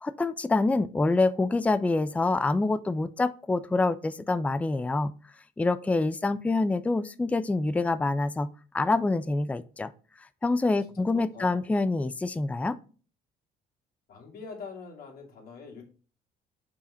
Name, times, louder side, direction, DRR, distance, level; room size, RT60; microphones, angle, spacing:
voice 1, 0.0-5.1 5.6-8.5 8.7-9.9 10.4-12.8, left 3 dB, 10° left, 0.4 m, -26 dB
voice 2, 10.9-11.6 14.1-15.8, left 5 dB, 60° left, 2.6 m, -44 dB
5.6 x 4.8 x 4.3 m
cardioid pair, 110°, 17 cm